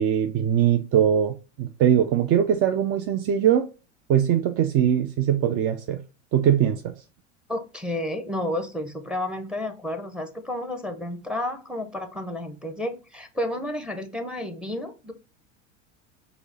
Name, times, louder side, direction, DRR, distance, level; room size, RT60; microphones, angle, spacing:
voice 1, 0.0-3.7 4.1-6.0 6.3-6.9, right 9 dB, 40° right, 0.4 m, -21 dB
voice 2, 7.5-15.1, left 1 dB, ahead, 0.7 m, -31 dB
4.8 x 2.1 x 3.9 m
hypercardioid pair, 100°, 39 cm